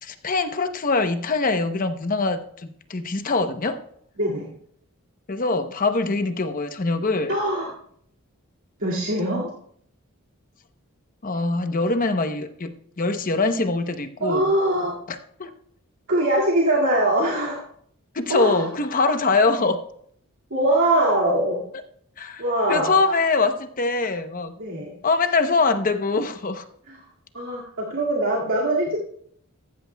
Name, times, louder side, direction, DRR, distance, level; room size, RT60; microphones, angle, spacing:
voice 1, 0.0-3.8 5.3-7.3 11.2-14.5 15.4-15.5 18.1-19.8 22.2-22.4 22.7-24.5 25.0-26.6, left 3 dB, 40° left, 8 dB, 0.8 m, -23 dB
voice 2, 4.2-4.5 7.3-7.7 8.8-9.5 14.2-15.0 16.1-17.6 18.3-18.7 20.5-21.6 22.4-23.0 24.6-25.0 26.9-27.0 27.3-29.0, right 1 dB, 65° right, -5 dB, 2.2 m, -22 dB
15.0 x 13.5 x 2.3 m, 0.66 s
head